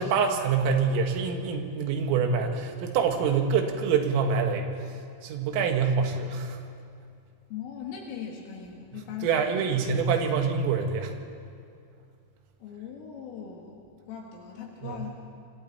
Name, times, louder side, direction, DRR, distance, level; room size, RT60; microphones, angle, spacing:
voice 1, 0.0-4.7 5.2-6.6 8.9-11.1 14.8-15.0, right 5 dB, 80° right, 4 dB, 4.1 m, -26 dB
voice 2, 7.5-10.2 12.6-15.1, left 7 dB, 75° left, -1 dB, 4.3 m, -40 dB
26.5 x 26.0 x 4.3 m, 2.4 s
omnidirectional pair, 5.9 m